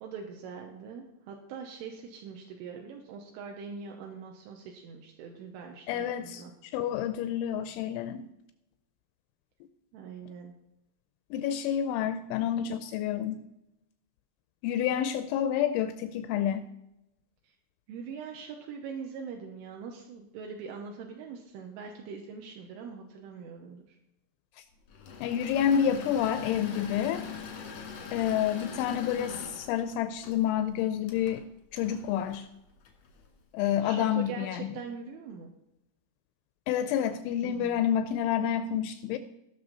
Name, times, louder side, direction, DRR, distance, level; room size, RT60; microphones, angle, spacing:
voice 1, 0.0-6.5 9.9-10.5 17.9-24.0 33.8-35.5 37.4-37.8, right 6 dB, 80° right, 2 dB, 3.3 m, -42 dB
voice 2, 5.9-8.3 11.3-13.4 14.6-16.7 25.2-27.2 28.1-31.4 31.7-32.5 33.5-34.8 36.7-39.2, left 9 dB, 85° left, 10 dB, 2.7 m, -29 dB
Engine / Mechanisms, 24.9-33.3, left 6 dB, 70° left, 1.6 m, -42 dB
18.5 x 6.3 x 4.1 m, 0.89 s
omnidirectional pair, 5.9 m